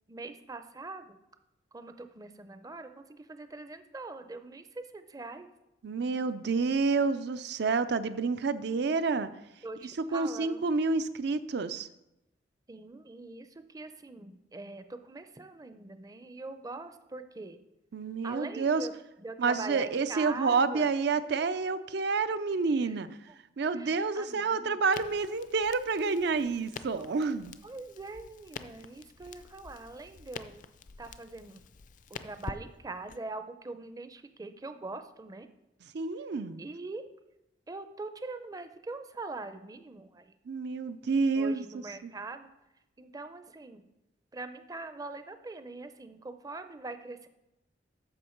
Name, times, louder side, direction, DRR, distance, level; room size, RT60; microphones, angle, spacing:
voice 1, 0.1-1.2 1.7-5.5 9.6-10.6 12.7-17.6 18.2-18.9 19.2-20.9 22.8-22.9 23.3-23.4 23.8-24.8 27.0-27.3 27.6-30.6 31.0-31.6 32.2-35.5 36.6-37.0 37.7-40.3 41.3-42.5 43.0-43.8 44.3-47.3, right 3 dB, 20° right, 9 dB, 0.5 m, -42 dB
voice 2, 5.8-9.3 9.8-11.9 17.9-18.9 19.4-23.1 23.6-27.6 35.8-36.6 40.5-41.7 42.0-42.1, right 4 dB, 65° right, 13 dB, 0.5 m, -29 dB
Crackle, 24.9-33.2, left 5 dB, 45° left, 0.4 m, -47 dB
13.0 x 5.2 x 4.4 m, 0.91 s
head